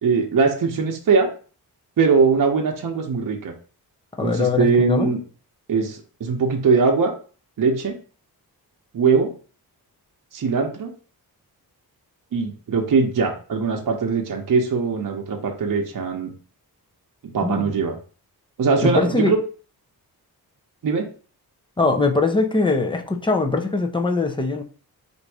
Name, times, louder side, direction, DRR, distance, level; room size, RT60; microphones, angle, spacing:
voice 1, 0.0-1.3 2.0-3.5 4.2-5.2 5.7-7.1 7.6-8.0 8.9-9.3 10.3-10.9 12.3-16.3 17.3-18.0 18.6-19.4 20.8-21.1, right 5 dB, 60° right, 1 dB, 0.9 m, -21 dB
voice 2, 4.2-5.1 17.4-17.8 18.8-19.3 21.8-24.6, left 3 dB, 15° left, 4 dB, 0.5 m, -21 dB
3.9 x 2.6 x 4.7 m, 0.39 s
wide cardioid pair, 155°, 37 cm